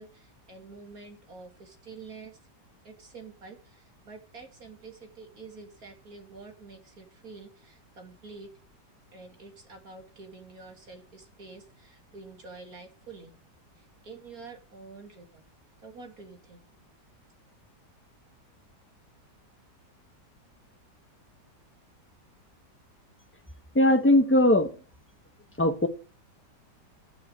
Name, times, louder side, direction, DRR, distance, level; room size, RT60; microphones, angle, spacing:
voice 1, 0.0-2.4 2.8-8.5 9.1-13.3 13.8-15.4 15.8-16.6, right 4 dB, 55° right, 3.3 m, -47 dB
voice 2, 23.7-24.7 25.6-25.9, left 1 dB, 10° left, 0.9 m, -20 dB
12.0 x 7.1 x 8.1 m
omnidirectional pair, 1.8 m